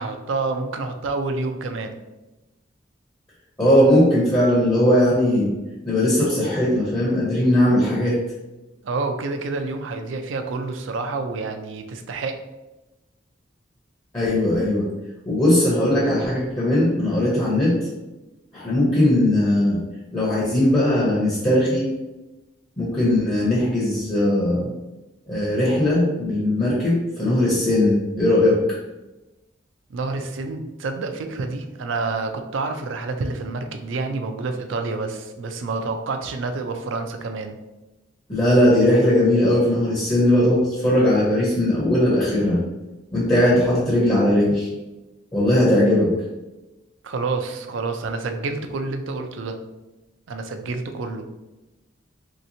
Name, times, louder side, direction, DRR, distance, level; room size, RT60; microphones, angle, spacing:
voice 1, 0.0-2.0 8.8-12.4 29.9-37.6 47.0-49.6 50.3-51.3, right 3 dB, 75° right, 6 dB, 0.4 m, -28 dB
voice 2, 3.6-5.5 5.9-8.2 14.1-14.9 15.3-17.7 18.5-19.8 20.1-21.9 22.8-24.7 25.3-28.6 38.3-42.6 43.1-44.7 45.3-46.1, left 1 dB, 20° left, -6 dB, 0.7 m, -19 dB
3.2 x 2.9 x 2.6 m, 1.0 s
head